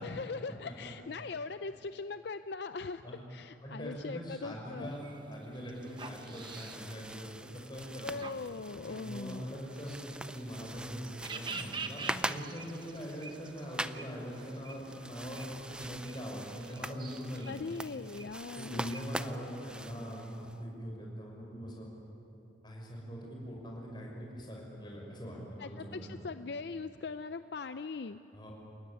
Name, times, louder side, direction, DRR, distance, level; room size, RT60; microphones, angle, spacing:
voice 1, 0.0-3.0 3.3-4.9 8.0-9.4 17.5-18.9 25.6-28.2, left 4 dB, 60° left, 11 dB, 0.5 m, -40 dB
voice 2, 3.6-5.0 5.3-8.2 8.8-17.6 18.6-21.9 22.6-26.2 28.3-28.5, equal, 25° left, -1 dB, 5.7 m, -42 dB
sound 1, 4.8-19.3, right 4 dB, 25° right, 1.1 m, -48 dB
sound 2, 5.7-20.6, right 1 dB, 5° right, 0.4 m, -44 dB
28.5 x 16.0 x 9.9 m, 3.0 s
head